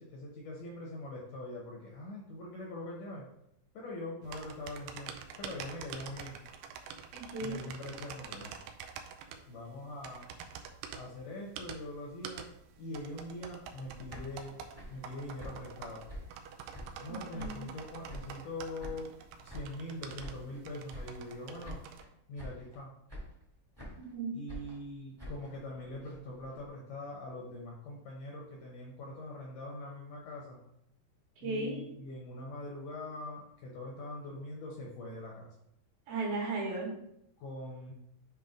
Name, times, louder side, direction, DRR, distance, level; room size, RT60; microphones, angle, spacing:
voice 1, 0.0-3.3 3.7-6.4 7.4-8.6 9.5-10.3 10.9-12.5 12.8-14.6 14.9-16.0 17.0-19.1 19.4-21.8 22.3-22.9 24.3-30.6 31.4-35.6 37.4-37.9, left 1 dB, 70° left, -2 dB, 2.0 m, -43 dB
sound 1, 4.2-22.0, right 7 dB, 90° right, 1.9 m, -47 dB
voice 2, 7.1-7.6 17.3-17.6 24.0-24.4 31.4-31.8 36.1-36.9, right 3 dB, 70° right, -3 dB, 3.6 m, -35 dB
sound 2, 13.8-17.1 17.4-18.5 18.8-20.6 20.9-21.4 21.6-22.1 22.3-22.8 23.1-24.1 24.5-26.7, equal, 10° right, 0.8 m, -47 dB
7.6 x 3.1 x 5.0 m, 0.77 s
omnidirectional pair, 4.6 m